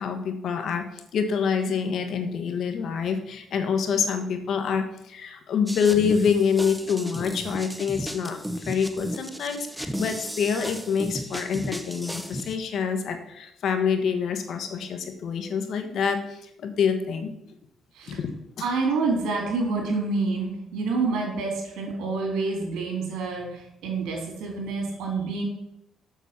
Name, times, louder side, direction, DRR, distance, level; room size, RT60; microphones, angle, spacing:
voice 1, 0.0-8.4 8.7-17.3 18.1-18.3 18.6-18.7, left 6 dB, 70° left, 7 dB, 1.3 m, -26 dB
sound 1, 5.7-12.6, equal, ahead, 0.8 m, -35 dB
voice 2, 18.6-25.4, right 3 dB, 85° right, 0 dB, 3.6 m, -28 dB
7.3 x 6.9 x 5.8 m, 0.80 s
cardioid pair, 90°, 0 cm